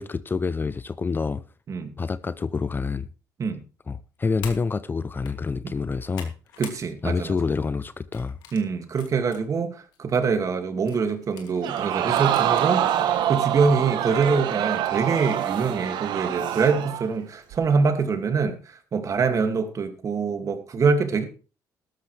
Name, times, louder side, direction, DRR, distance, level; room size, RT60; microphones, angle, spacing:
voice 1, 0.0-1.4 2.0-3.1 3.9-6.3 7.0-8.4, left 4 dB, 25° left, 0.6 m, -27 dB
sound 1, 4.4-4.6 5.1-5.3 5.8-6.8 7.2-7.5 8.1-9.4 9.9-10.0 10.9-12.7 13.2-13.3 14.1-14.5, left 7 dB, 90° left, 2.7 m, -43 dB
voice 2, 6.6-7.3 8.5-21.2, right 5 dB, 45° right, 2.3 m, -24 dB
Crowd, 11.6-17.1 17.5-17.6, right 11 dB, 75° right, 1.2 m, -25 dB
14.0 x 12.5 x 3.4 m
cardioid pair, 95°, 8 cm